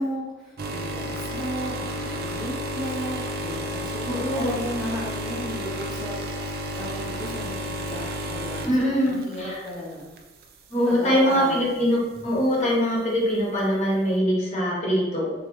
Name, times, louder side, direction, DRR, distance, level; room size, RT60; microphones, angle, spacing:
voice 1, 0.0-6.2 6.4-10.1 10.8-11.9, equal, ahead, -10 dB, 0.8 m, -34 dB
sound 1, 0.6-9.7 10.2-10.4 11.3-11.4, equal, 55° right, 0.4 m, -31 dB
voice 2, 4.1-4.5 8.6-9.6 10.7-15.3, equal, 40° left, -5 dB, 1.0 m, -23 dB
3.5 x 2.9 x 3.1 m, 1.1 s
head